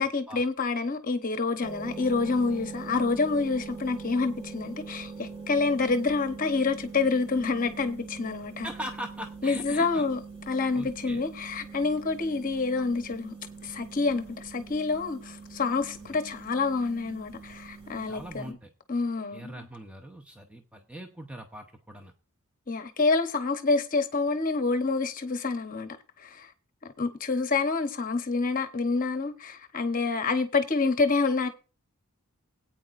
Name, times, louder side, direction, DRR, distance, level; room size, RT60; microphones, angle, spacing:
voice 1, 0.0-8.7 9.4-10.2 10.5-13.3 13.6-18.6 18.9-19.7 22.7-26.5 26.8-31.5, left 4 dB, 40° left, 0.9 m, -27 dB
sound 1, 1.6-18.5, right 4 dB, 25° right, 1.7 m, -43 dB
voice 2, 8.6-10.1 10.7-11.2 16.0-16.2 18.1-18.7 19.3-22.1, right 1 dB, 5° right, 0.7 m, -41 dB
18.0 x 8.8 x 2.5 m
head